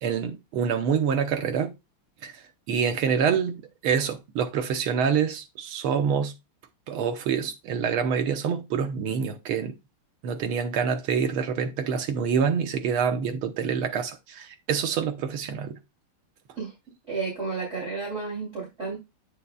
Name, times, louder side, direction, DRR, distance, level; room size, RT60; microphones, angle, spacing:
voice 1, 0.0-1.7 2.2-2.3 2.7-6.3 6.9-9.8 10.2-15.8, right 7 dB, 75° right, 1.8 m, -26 dB
voice 2, 17.1-19.0, right 4 dB, 30° right, 3.1 m, -32 dB
8.6 x 6.9 x 2.2 m
omnidirectional pair, 2.4 m